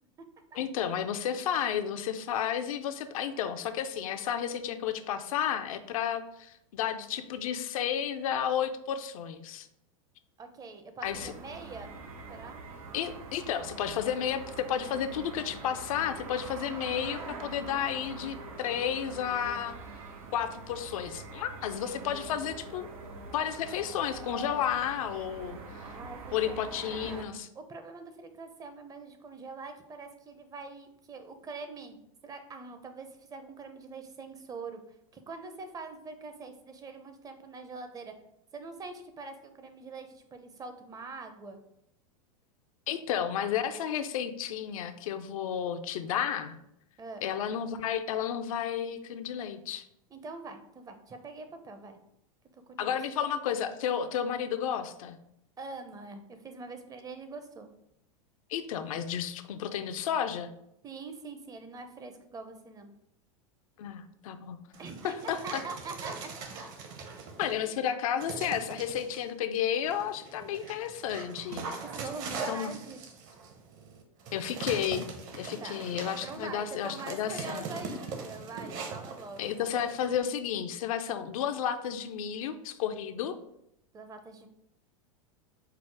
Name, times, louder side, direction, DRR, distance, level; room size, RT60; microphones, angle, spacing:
voice 1, 0.6-9.7 11.0-11.3 12.9-19.8 20.3-22.9 23.3-25.8 26.3-27.5 42.9-46.6 47.2-49.8 52.8-55.2 58.5-60.5 63.8-64.6 65.0-65.6 67.4-71.7 72.5-72.8 74.3-77.7 79.4-83.4, left 9 dB, 70° left, 8 dB, 0.5 m, -32 dB
voice 2, 10.4-12.0 12.3-12.6 25.8-26.6 27.5-34.8 35.1-38.1 38.5-41.6 47.0-47.3 50.1-52.0 52.5-52.9 55.6-57.7 60.8-62.9 64.8-66.3 67.4-67.5 71.8-73.0 75.6-75.8 76.2-79.4 83.9-84.5, right 4 dB, 20° right, 7 dB, 0.5 m, -44 dB
sound 1, 11.0-27.2, right 3 dB, 75° right, 0.8 m, -44 dB
Dog, 64.7-67.6 68.2-69.2 69.8-80.2, right 4 dB, 50° right, 0.9 m, -41 dB
4.6 x 2.0 x 4.6 m, 0.78 s
hypercardioid pair, 105°, 18 cm